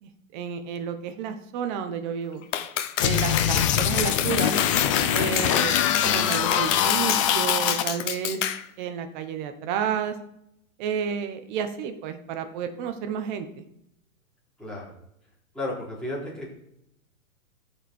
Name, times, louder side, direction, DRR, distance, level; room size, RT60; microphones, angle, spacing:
voice 1, 0.0-2.4 3.0-4.5 5.1-5.7 6.0-8.4 8.8-10.2 10.8-13.7, right 7 dB, 35° right, 8 dB, 1.2 m, -31 dB
Clapping, 2.5-8.6, left 10 dB, 60° left, 0.9 m, -29 dB
sound 1, 3.0-7.8, left 10 dB, 25° left, 0.5 m, -23 dB
voice 2, 15.5-16.5, left 1 dB, ahead, -7 dB, 3.8 m, -33 dB
13.5 x 5.0 x 4.6 m, 0.77 s
hypercardioid pair, 145°, 42 cm